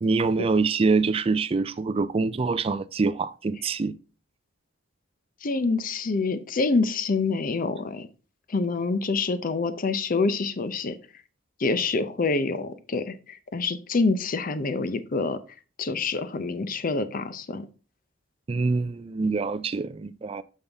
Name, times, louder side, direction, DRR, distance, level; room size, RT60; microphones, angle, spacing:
voice 1, 0.0-3.9 18.5-20.4, right 4 dB, 30° right, 0.4 m, -25 dB
voice 2, 5.4-8.1 8.5-11.0 11.6-15.4 15.8-17.7, left 3 dB, 45° left, 0.6 m, -26 dB
7.0 x 5.5 x 3.4 m
head